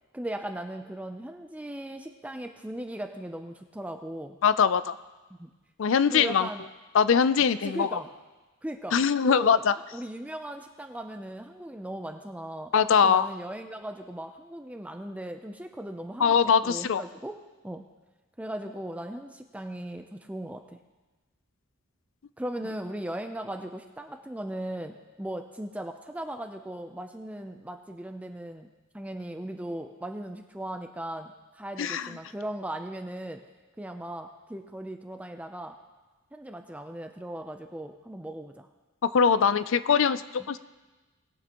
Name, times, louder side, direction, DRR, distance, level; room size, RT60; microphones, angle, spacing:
voice 1, 0.1-4.4 5.4-5.5 6.1-6.6 7.6-8.1 8.6-9.0 9.2-9.6 9.9-12.7 13.0-17.4 17.6-17.8 18.4-20.8 22.4-28.7 28.9-33.4 33.8-35.8 36.3-38.7 40.4-40.5, right 1 dB, 5° right, 5 dB, 0.4 m, -38 dB
voice 2, 4.4-4.9 5.8-6.5 6.9-8.0 8.9-9.7 12.7-13.3 16.2-17.0 31.8-32.1 39.0-40.6, left 6 dB, 65° left, 14 dB, 0.4 m, -22 dB
20.5 x 8.4 x 3.0 m, 1.2 s
head